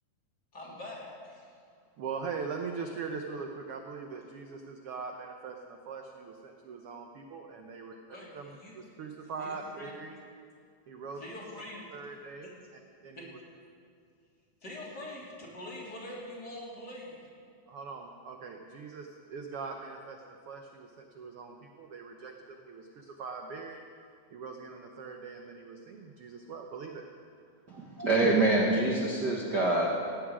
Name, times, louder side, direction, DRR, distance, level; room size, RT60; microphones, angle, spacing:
voice 1, 0.5-1.5 8.1-8.7 9.4-10.0 11.2-11.9 13.2-13.3 14.6-17.3, left 1 dB, 30° left, -5 dB, 3.7 m, -44 dB
voice 2, 2.0-7.9 8.3-10.2 10.9-11.2 11.9-12.5 13.0-13.4 17.7-23.8 24.3-27.1, right 5 dB, 65° right, 4 dB, 1.5 m, -41 dB
voice 3, 27.7-29.9, right 2 dB, 45° right, -2 dB, 1.6 m, -26 dB
17.0 x 8.8 x 9.4 m, 2.2 s
omnidirectional pair, 3.6 m